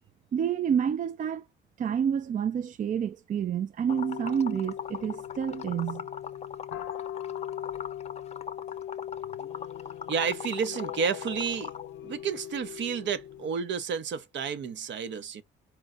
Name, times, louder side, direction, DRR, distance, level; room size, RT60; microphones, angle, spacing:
voice 1, 0.3-1.4 1.8-6.1, right 8 dB, 40° right, 0.4 m, -29 dB
sound 1, 3.9-13.5, left 11 dB, 85° left, 0.5 m, -40 dB
Liquid, 3.9-11.9, left 6 dB, 35° left, 0.5 m, -40 dB
voice 2, 10.1-11.7 12.0-15.4, right 6 dB, 65° right, 0.8 m, -31 dB
4.5 x 2.3 x 3.6 m
cardioid pair, 90°, 20 cm